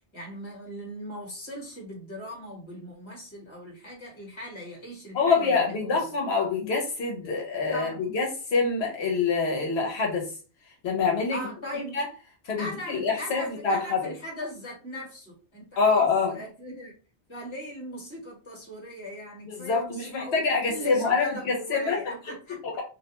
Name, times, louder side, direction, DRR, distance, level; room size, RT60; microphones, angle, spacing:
voice 1, 0.1-6.0 7.2-7.4 7.7-8.0 11.3-12.0 12.6-16.9 17.3-22.6, left 1 dB, 30° left, 1.0 m, -39 dB
voice 2, 5.1-10.3 10.8-11.4 11.9-12.0 12.4-14.0 15.8-16.4 19.5-22.0, left 4 dB, 75° left, 0.9 m, -25 dB
2.4 x 2.1 x 2.8 m
omnidirectional pair, 1.1 m